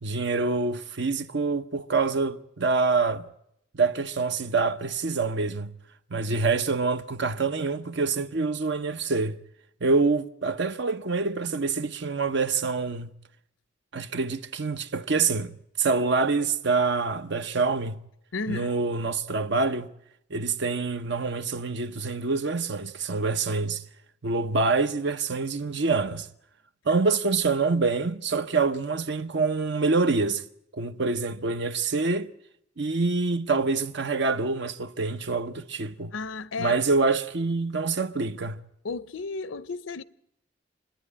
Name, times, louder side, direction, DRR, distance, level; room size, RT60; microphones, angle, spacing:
voice 1, 0.0-3.3 3.7-5.7 6.1-9.4 9.8-13.1 13.9-15.5 15.8-18.0 18.5-19.9 20.3-23.8 24.2-26.3 26.9-30.4 30.7-32.3 32.8-36.1 36.6-38.6, right 4 dB, 65° right, 0.8 m, -26 dB
voice 2, 18.3-18.7 36.1-36.8 38.8-40.0, left 4 dB, 80° left, 0.7 m, -33 dB
26.0 x 10.5 x 9.7 m
head